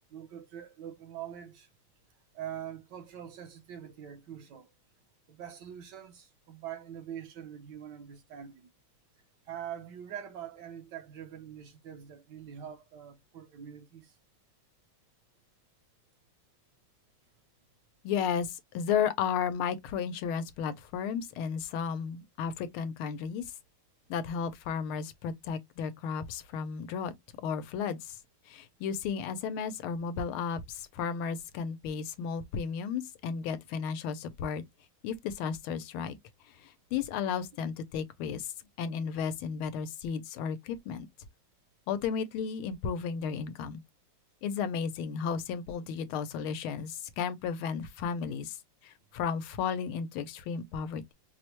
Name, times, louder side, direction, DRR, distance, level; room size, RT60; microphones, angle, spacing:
voice 1, 0.1-1.7 2.3-4.7 5.3-8.7 9.4-14.2, right 9 dB, 65° right, 1.2 m, -44 dB
voice 2, 18.0-23.4 24.1-27.1 27.4-28.2 28.5-34.6 35.0-36.2 36.6-38.5 38.8-41.1 41.9-43.8 44.4-48.6 48.8-51.1, left 7 dB, 85° left, 1.5 m, -33 dB
4.8 x 2.1 x 2.9 m
omnidirectional pair, 2.3 m